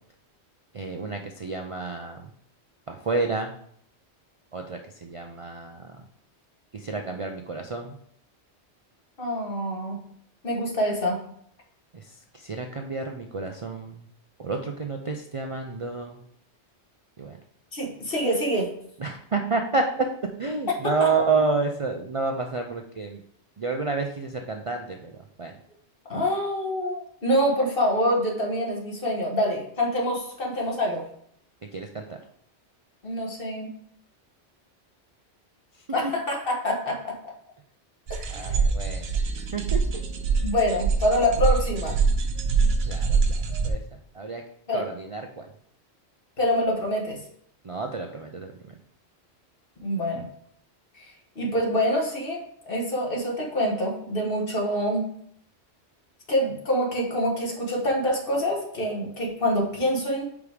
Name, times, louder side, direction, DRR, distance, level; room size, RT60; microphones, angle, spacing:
voice 1, 0.7-2.3 2.9-3.5 4.5-5.9 6.7-7.9 11.9-14.1 14.4-16.2 17.2-17.4 19.0-20.1 20.4-23.2 23.6-25.5 31.7-32.2 36.0-36.1 38.3-39.2 39.5-40.0 42.9-43.8 44.1-44.4 44.7-45.5 47.6-48.5, right 4 dB, 45° right, 3 dB, 0.4 m, -30 dB
voice 2, 9.2-9.9 10.4-11.2 17.7-18.7 21.0-21.1 26.1-31.0 33.0-33.7 35.9-37.1 38.1-38.5 40.4-42.0 44.7-44.9 46.4-47.2 49.8-50.2 50.9-55.0 56.3-60.2, equal, 55° left, 0 dB, 1.6 m, -26 dB
sound 1, 38.1-43.7, right 5 dB, 65° right, 0.9 m, -24 dB
5.3 x 4.7 x 4.9 m, 0.67 s
omnidirectional pair, 1.2 m